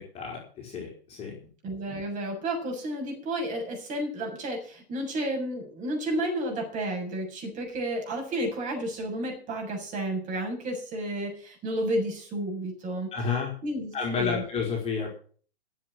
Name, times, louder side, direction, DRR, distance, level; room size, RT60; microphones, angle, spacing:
voice 1, 0.1-1.3 13.1-13.5 13.9-15.1, left 5 dB, 20° left, -1 dB, 4.5 m, -30 dB
voice 2, 1.6-13.1 13.6-14.4, right 1 dB, 25° right, 1 dB, 7.0 m, -31 dB
15.5 x 7.9 x 7.7 m, 0.43 s
figure-of-eight pair, 115°, 32 cm